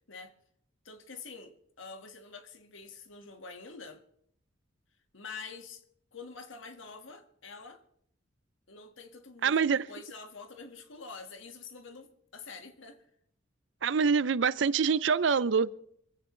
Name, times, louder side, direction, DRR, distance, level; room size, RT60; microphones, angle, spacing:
voice 1, 0.9-4.0 5.1-5.8 6.1-7.8 8.7-13.0, left 4 dB, 80° left, 1.8 m, -46 dB
voice 2, 9.4-9.9 13.8-15.7, right 6 dB, 70° right, 0.5 m, -25 dB
25.0 x 15.5 x 3.3 m
head